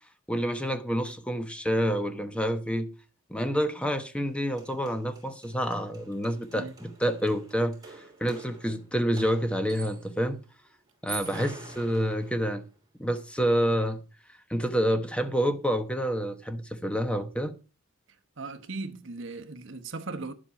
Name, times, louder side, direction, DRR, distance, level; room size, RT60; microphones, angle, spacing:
voice 1, 0.3-2.9 3.3-10.4 11.0-12.6 13.0-14.0 14.5-17.5, equal, 5° left, 0.9 m, -28 dB
sound 1, 4.3-4.4 4.6-10.2 10.9-12.7, right 3 dB, 20° right, 3.1 m, -45 dB
voice 2, 18.4-20.3, right 3 dB, 60° right, 1.1 m, -37 dB
11.0 x 7.5 x 5.6 m
head